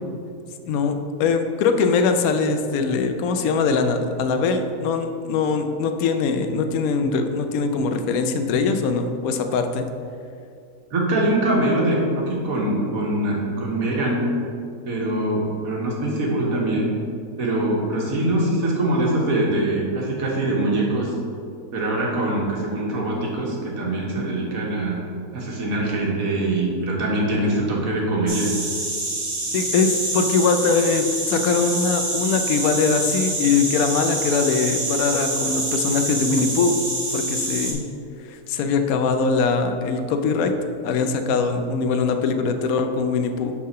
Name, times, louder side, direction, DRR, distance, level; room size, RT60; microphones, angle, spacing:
voice 1, 0.7-9.8 29.5-36.8 37.1-37.8 38.3-40.5 40.8-43.5, left 4 dB, 75° left, 7 dB, 1.0 m, -22 dB
voice 2, 10.9-14.2 14.9-16.9 17.4-21.1 21.7-25.0 25.3-28.5, right 1 dB, 65° right, -2 dB, 1.5 m, -23 dB
sound 1, 28.3-37.7, right 2 dB, 35° right, 0.7 m, -26 dB
5.7 x 3.6 x 5.4 m, 2.4 s
omnidirectional pair, 1.6 m